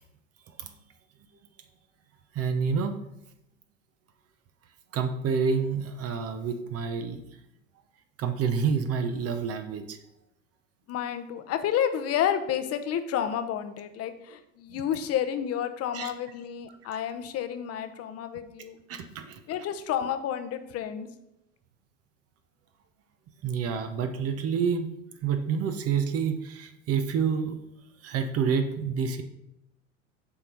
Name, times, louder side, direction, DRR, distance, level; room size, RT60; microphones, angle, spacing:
voice 1, 2.3-3.0 4.9-7.2 8.2-10.0 15.9-16.1 18.9-19.4 23.4-24.9 25.2-27.6 28.0-29.2, right 6 dB, 40° right, 7 dB, 0.9 m, -28 dB
voice 2, 10.9-18.8 19.5-21.1, left 9 dB, 40° left, 9 dB, 0.9 m, -30 dB
7.2 x 4.5 x 5.3 m, 0.86 s
hypercardioid pair, 80°, 38 cm